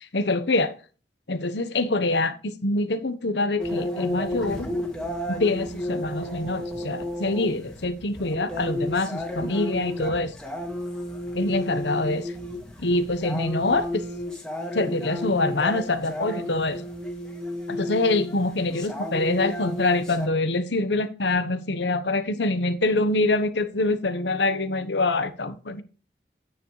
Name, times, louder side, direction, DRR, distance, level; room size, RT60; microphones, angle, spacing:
voice 1, 0.1-0.7 1.3-4.7 5.4-10.3 11.3-12.3 12.8-14.0 14.7-16.9 17.7-25.8, left 2 dB, 80° left, 1.1 m, -25 dB
sound 1, 3.6-20.3, left 1 dB, 5° left, 2.0 m, -32 dB
9.7 x 9.4 x 3.3 m
head